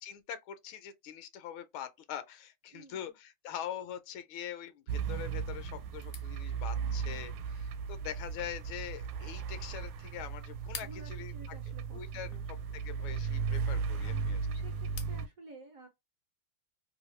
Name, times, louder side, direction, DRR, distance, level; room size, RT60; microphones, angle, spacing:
voice 1, 0.0-7.3 7.6-11.3 11.9-12.3 12.7-14.4, left 10 dB, 80° left, 1.4 m, -43 dB
voice 2, 2.7-3.2 6.7-7.3 10.8-12.5 13.7-14.2 14.5-15.9, right 2 dB, 55° right, 1.0 m, -54 dB
sound 1, 4.9-15.3, right 6 dB, 85° right, 1.4 m, -36 dB
sound 2, 6.0-15.2, left 7 dB, 65° left, 0.8 m, -54 dB
3.5 x 2.6 x 3.1 m
omnidirectional pair, 2.3 m